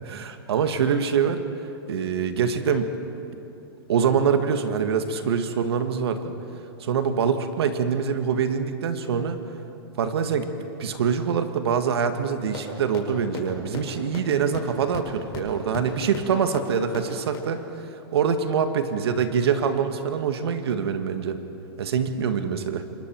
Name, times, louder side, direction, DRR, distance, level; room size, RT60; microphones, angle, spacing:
voice 1, 0.0-1.4 1.9-2.9 3.9-6.3 6.8-9.4 10.0-10.5 10.8-17.6 18.1-21.4 21.8-22.9, right 6 dB, 80° right, 8 dB, 1.7 m, -24 dB
sound 1, 12.5-12.6 12.9-13.0 13.3-13.4 13.7-13.8 14.1-14.2 14.5-14.6 14.9-15.0 15.3-15.4 15.7-15.8 16.1-16.2 16.5-16.6 16.9-17.0 17.3-17.4, left 10 dB, 35° left, 5.5 m, -34 dB
26.5 x 22.0 x 4.6 m, 2.8 s
hypercardioid pair, 140°, 13 cm